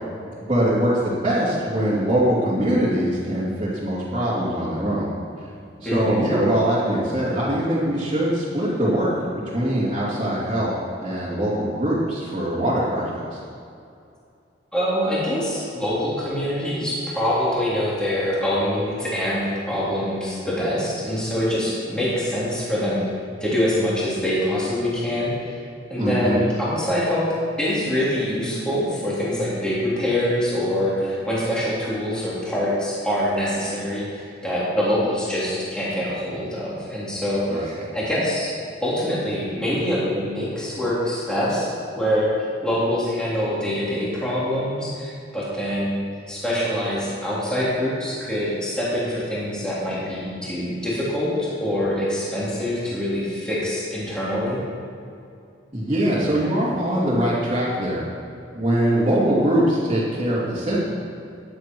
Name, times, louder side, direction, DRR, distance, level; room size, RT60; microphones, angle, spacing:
voice 1, 0.4-5.1 5.8-9.1 9.4-10.7 11.0-13.4 26.0-26.4 37.5-37.8 55.7-58.0 58.5-60.8, right 1 dB, 25° right, -12 dB, 2.8 m, -22 dB
voice 2, 5.8-6.2 14.7-23.0 23.4-25.6 25.9-27.2 27.6-38.5 38.8-42.3 42.6-54.6, equal, 5° left, -9 dB, 3.2 m, -24 dB
15.5 x 10.5 x 4.6 m, 2.5 s
head